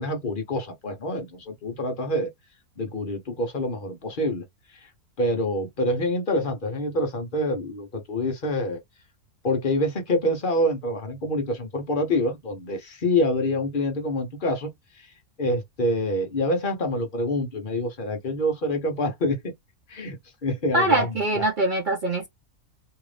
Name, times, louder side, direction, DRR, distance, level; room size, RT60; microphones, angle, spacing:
voice 1, 0.0-2.3 2.8-4.4 5.2-8.8 9.4-14.7 15.0-15.1 15.4-19.5 19.9-21.1, left 1 dB, 45° left, 0.7 m, -26 dB
voice 2, 20.7-22.3, right 2 dB, 55° right, 0.5 m, -23 dB
2.8 x 2.5 x 3.2 m
omnidirectional pair, 1.6 m